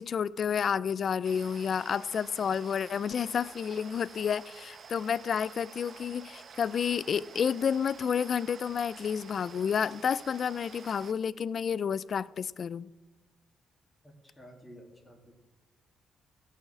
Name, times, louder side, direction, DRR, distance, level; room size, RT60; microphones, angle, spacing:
voice 1, 0.0-12.9, left 7 dB, 50° left, 0.4 m, -30 dB
sound 1, 1.2-11.1, right 6 dB, 50° right, 0.8 m, -50 dB
voice 2, 14.2-15.3, equal, 10° left, 2.5 m, -52 dB
16.0 x 5.7 x 7.4 m
cardioid pair, 90°, 0 cm